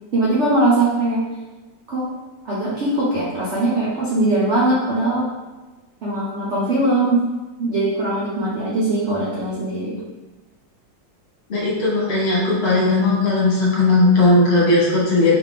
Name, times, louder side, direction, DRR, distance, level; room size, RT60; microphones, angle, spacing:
voice 1, 0.1-1.2 1.9-2.1 2.4-5.3 6.0-7.3 7.6-10.0, right 2 dB, 75° right, -6 dB, 0.6 m, -20 dB
voice 2, 11.5-15.3, left 2 dB, 35° left, -6 dB, 1.5 m, -17 dB
4.1 x 3.5 x 3.3 m, 1.2 s
omnidirectional pair, 2.2 m